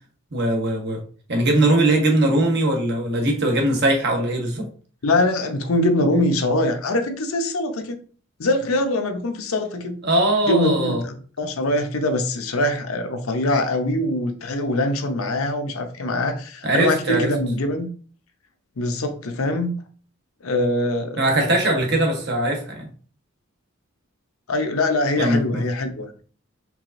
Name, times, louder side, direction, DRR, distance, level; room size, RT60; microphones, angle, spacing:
voice 1, 0.3-1.0 1.3-4.7 10.0-11.0 16.6-17.3 21.2-22.9 25.2-25.7, right 1 dB, 50° right, 2 dB, 1.0 m, -20 dB
voice 2, 5.0-8.0 8.4-10.0 10.4-17.9 18.8-19.7 20.4-21.3 24.5-26.2, left 1 dB, 80° left, 6 dB, 0.7 m, -23 dB
4.7 x 3.3 x 2.6 m, 0.41 s
head